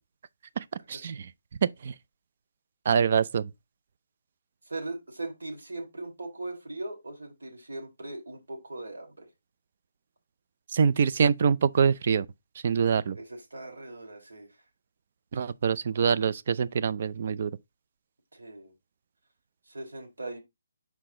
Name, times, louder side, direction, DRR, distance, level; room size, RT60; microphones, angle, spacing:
voice 1, 0.6-1.2 1.8-1.9 2.9-3.5 10.7-12.3 12.6-13.2 15.3-17.5, right 6 dB, 45° right, 0.4 m, -25 dB
voice 2, 4.7-9.3 13.1-14.6 15.9-16.0 18.3-18.7 19.7-20.4, right 2 dB, 90° right, 3.4 m, -39 dB
6.1 x 4.7 x 3.7 m
hypercardioid pair, 165°, 0 cm